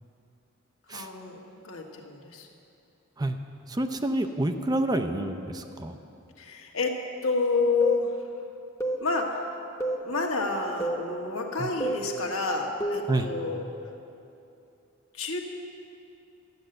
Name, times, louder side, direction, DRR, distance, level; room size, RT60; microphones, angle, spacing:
voice 1, 0.9-2.5 6.4-8.2 9.0-9.4 10.0-13.7 15.1-15.4, left 3 dB, 75° left, 1 dB, 1.5 m, -29 dB
voice 2, 3.7-6.0 11.6-11.7 13.1-13.3, right 1 dB, 20° right, 7 dB, 0.5 m, -28 dB
sound 1, 7.8-8.1 8.8-9.1 9.8-10.1 10.8-11.1 11.8-12.1 12.8-13.1, right 1 dB, 15° left, 1.0 m, -29 dB
12.0 x 9.1 x 7.7 m, 2.8 s
head